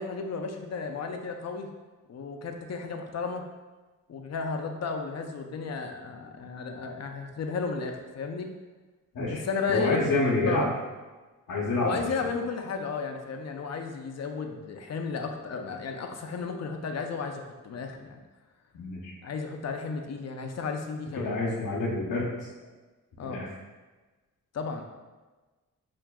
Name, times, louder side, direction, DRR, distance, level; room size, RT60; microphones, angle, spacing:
voice 1, 0.0-1.7 2.1-3.4 4.1-8.5 9.3-10.7 11.8-18.2 19.2-21.3 23.2-23.5 24.5-24.8, left 4 dB, 50° left, 4 dB, 0.5 m, -33 dB
voice 2, 9.7-10.7 11.5-12.1 18.7-19.1 21.2-22.3 23.2-23.5, left 2 dB, 80° left, -8 dB, 0.8 m, -27 dB
5.8 x 2.5 x 2.2 m, 1.2 s
wide cardioid pair, 125°, 34 cm